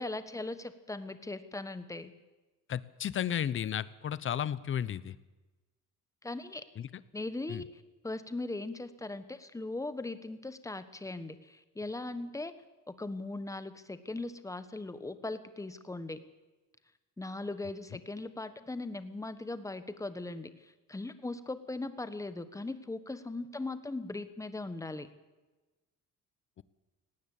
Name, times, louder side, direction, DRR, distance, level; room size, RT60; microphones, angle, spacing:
voice 1, 0.0-2.1 6.2-6.6 7.1-7.7 8.0-12.5 12.9-16.2 17.2-25.1, left 2 dB, 10° left, 12 dB, 1.3 m, -39 dB
voice 2, 2.7-5.2 6.8-6.9 7.5-7.6 26.6-26.7, left 9 dB, 40° left, 18 dB, 0.8 m, -33 dB
18.0 x 18.0 x 8.5 m, 1.2 s
cardioid pair, 140°, 32 cm